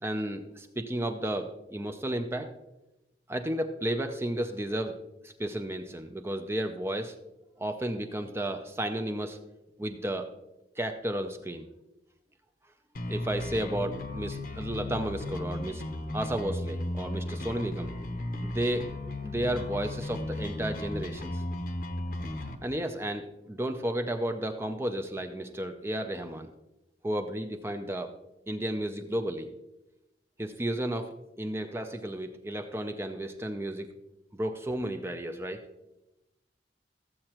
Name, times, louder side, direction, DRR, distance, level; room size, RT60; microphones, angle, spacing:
voice 1, 0.0-2.5 3.3-5.0 5.2-7.2 7.6-9.4 9.8-10.3 10.8-11.7 13.1-15.8 16.1-17.9 18.4-18.9 19.2-21.4 22.6-26.5 27.0-28.1 28.5-29.5 30.4-33.9 34.3-35.6, right 1 dB, 15° right, 6 dB, 0.5 m, -33 dB
sound 1, 12.9-22.5, left 1 dB, 50° left, 0.8 m, -35 dB
14.5 x 7.6 x 3.0 m, 0.94 s
head